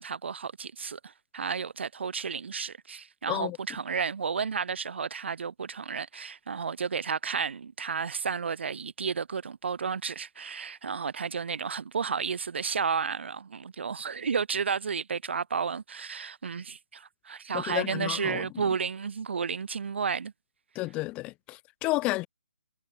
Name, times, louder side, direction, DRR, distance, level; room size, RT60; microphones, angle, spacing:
voice 1, 0.0-20.3, right 6 dB, 65° right, 2.1 m, -32 dB
voice 2, 17.5-18.4 20.8-22.3, left 20 dB, 15° left, 0.5 m, -31 dB
hypercardioid pair, 150°, 7 cm